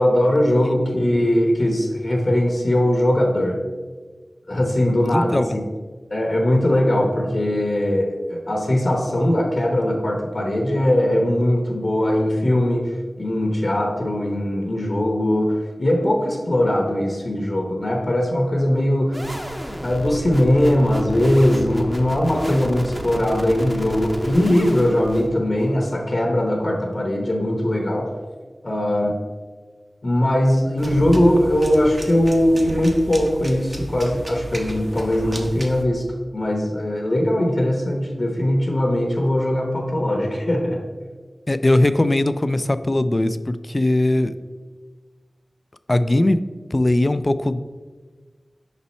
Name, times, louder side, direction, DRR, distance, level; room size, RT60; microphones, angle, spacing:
voice 1, 0.0-3.6 4.5-5.6 6.1-12.9 13.2-19.2 19.8-28.1 28.6-29.1 30.0-36.0 36.3-40.8, left 1 dB, 55° left, 0 dB, 0.9 m, -20 dB
voice 2, 5.1-5.6 41.5-44.3 45.9-46.4 46.7-47.6, left 1 dB, 40° left, 13 dB, 0.3 m, -19 dB
sound 1, 19.1-25.8, equal, 15° right, 0.8 m, -33 dB
sound 2, 30.8-35.8, right 1 dB, 45° right, 0.9 m, -33 dB
5.3 x 4.2 x 4.2 m, 1.4 s
cardioid pair, 40°, 0 cm